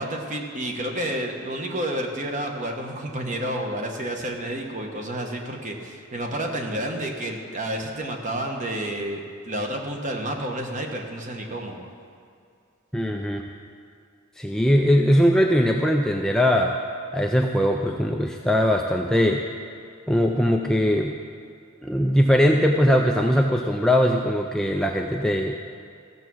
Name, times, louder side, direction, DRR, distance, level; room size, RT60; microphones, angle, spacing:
voice 1, 0.0-11.8, right 1 dB, 35° right, 2 dB, 1.2 m, -30 dB
voice 2, 12.9-13.4 14.4-16.7 17.1-19.4 20.1-21.1 21.8-25.6, equal, 5° left, 1 dB, 0.4 m, -20 dB
15.0 x 7.0 x 6.2 m, 2.4 s
head